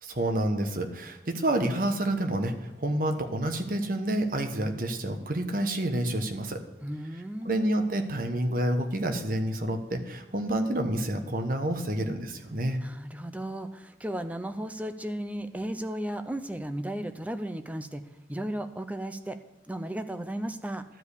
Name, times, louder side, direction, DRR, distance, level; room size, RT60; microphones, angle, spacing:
voice 1, 0.0-6.6 7.4-12.8, right 1 dB, 50° right, 6 dB, 1.1 m, -28 dB
voice 2, 6.8-7.5 12.8-18.0 18.3-19.4 19.7-20.8, right 1 dB, 10° right, 9 dB, 0.5 m, -35 dB
12.0 x 5.1 x 8.3 m, 1.1 s
head